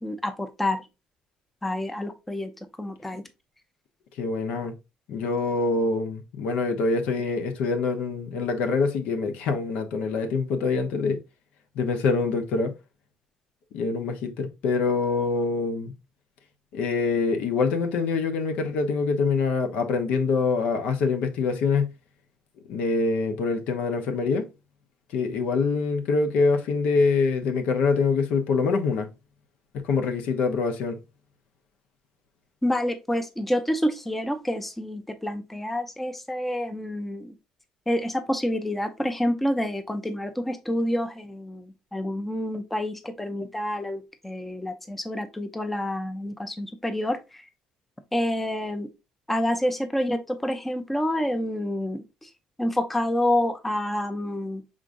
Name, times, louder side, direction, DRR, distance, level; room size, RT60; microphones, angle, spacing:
voice 1, 0.0-0.9 1.6-2.5 2.8-3.2 32.6-37.3 37.9-47.5 48.1-48.9 49.3-52.3 52.6-54.6, left 1 dB, 5° left, 0.5 m, -28 dB
voice 2, 4.2-4.7 5.1-11.2 11.7-12.7 13.7-15.9 16.7-21.9 22.7-24.5 25.1-29.1 29.7-31.0, left 4 dB, 80° left, 0.8 m, -25 dB
5.0 x 3.7 x 2.5 m
cardioid pair, 125°, 2 cm